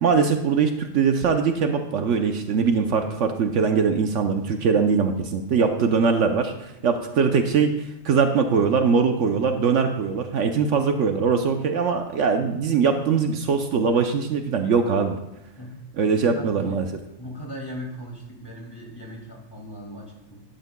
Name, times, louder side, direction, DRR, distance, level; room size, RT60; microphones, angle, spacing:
voice 1, 0.0-6.5 6.8-7.7 8.0-15.2 16.0-16.9, right 5 dB, 70° right, 6 dB, 1.0 m, -21 dB
voice 2, 15.6-15.9 16.3-16.9 17.2-20.4, equal, 15° left, -2 dB, 2.4 m, -38 dB
12.0 x 12.0 x 2.2 m, 0.89 s
omnidirectional pair, 1.3 m